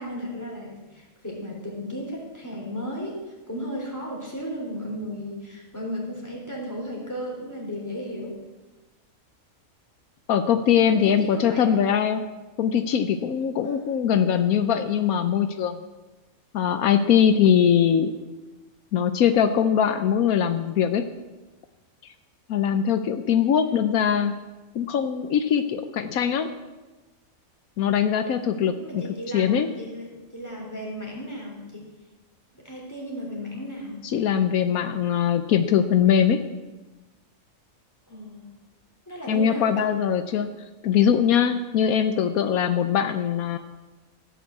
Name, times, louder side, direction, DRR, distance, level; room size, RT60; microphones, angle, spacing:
voice 1, 0.0-8.3 10.9-11.7 13.6-13.8 23.6-24.2 28.4-31.9 32.5-34.0 38.1-38.5 39.1-39.9, equal, 10° left, -3 dB, 3.7 m, -35 dB
voice 2, 10.3-12.2 12.6-15.8 16.5-18.1 18.9-21.1 22.5-24.3 24.7-26.5 27.8-29.0 29.3-29.7 34.0-36.4 39.3-40.5 40.8-43.6, left 8 dB, 80° left, 9 dB, 1.2 m, -21 dB
16.0 x 6.3 x 8.2 m, 1.2 s
omnidirectional pair, 1.5 m